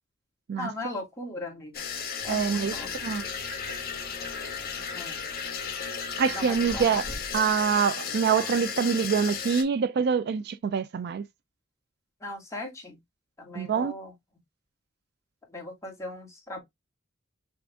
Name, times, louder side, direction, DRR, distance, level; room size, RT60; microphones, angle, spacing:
voice 1, 0.6-1.9 2.2-3.1 4.9-5.2 6.3-7.0 12.2-13.0 13.4-14.1 15.5-16.6, left 1 dB, 15° left, 1.8 m, -38 dB
sound 1, 1.7-9.6, left 6 dB, 50° left, 1.1 m, -34 dB
sound 2, 2.2-7.8, equal, 30° left, 1.4 m, -48 dB
voice 2, 2.3-2.7 3.0-3.2 6.2-7.0 7.3-11.2 13.6-13.9, right 6 dB, 55° right, 0.4 m, -25 dB
5.9 x 2.5 x 3.5 m
head